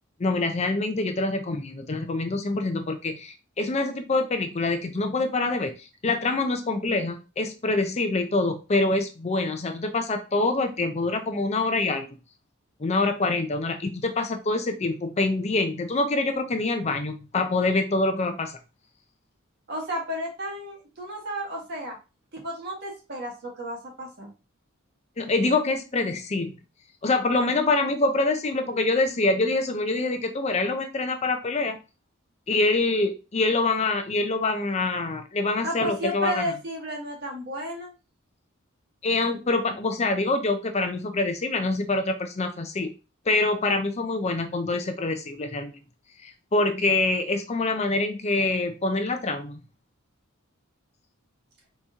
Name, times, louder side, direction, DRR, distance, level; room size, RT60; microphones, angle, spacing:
voice 1, 0.2-12.1 12.8-18.5 25.2-26.5 27.0-31.8 32.5-36.4 39.0-42.9 43.3-45.8 46.2-49.6, left 2 dB, 30° left, 6 dB, 0.5 m, -25 dB
voice 2, 19.7-22.0 22.3-24.3 35.6-37.9, equal, 50° right, -1 dB, 1.7 m, -32 dB
4.2 x 3.0 x 3.6 m, 0.30 s
head